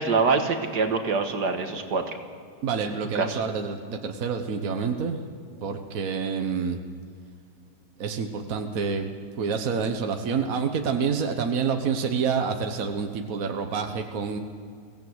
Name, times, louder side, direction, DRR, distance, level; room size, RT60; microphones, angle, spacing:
voice 1, 0.0-2.2 3.2-3.4, right 4 dB, 75° right, 5 dB, 2.2 m, -25 dB
voice 2, 2.6-5.2 5.6-6.8 8.0-9.1 9.4-14.4, right 5 dB, 55° right, 5 dB, 1.6 m, -28 dB
23.0 x 17.0 x 8.0 m, 2.2 s
omnidirectional pair, 1.8 m